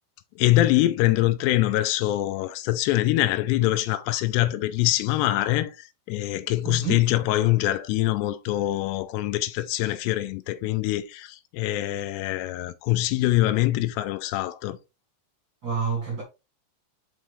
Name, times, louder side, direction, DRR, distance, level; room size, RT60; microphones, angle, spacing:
voice 1, 0.4-14.8, left 16 dB, 85° left, 2.7 m, -24 dB
voice 2, 6.6-7.1 15.6-16.2, right 6 dB, 40° right, 1.9 m, -28 dB
5.9 x 5.5 x 3.1 m
omnidirectional pair, 5.0 m